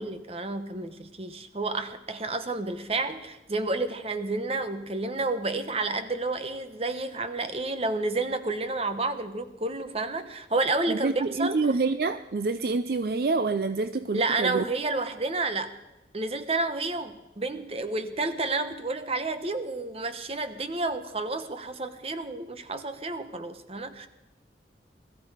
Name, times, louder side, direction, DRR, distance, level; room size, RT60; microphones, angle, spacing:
voice 1, 0.0-11.6 14.1-15.7 16.1-24.1, right 3 dB, 35° right, 10 dB, 1.0 m, -30 dB
voice 2, 10.9-14.6, right 3 dB, 55° right, 11 dB, 0.5 m, -27 dB
21.0 x 14.0 x 5.0 m, 1.0 s
head